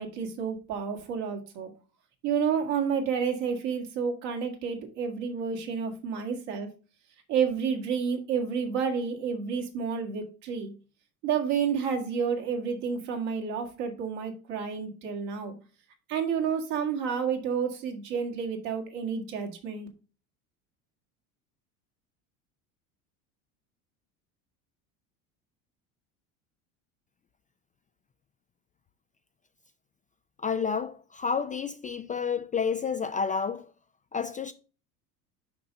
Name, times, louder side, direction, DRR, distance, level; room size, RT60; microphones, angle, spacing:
voice 1, 0.0-1.7 2.2-6.7 7.3-10.7 11.2-15.5 16.1-19.9, right 6 dB, 60° right, 2.1 m, -30 dB
voice 2, 30.4-33.7 34.1-34.5, left 6 dB, 20° left, 0.3 m, -30 dB
5.9 x 5.3 x 5.2 m
hypercardioid pair, 85°, 44 cm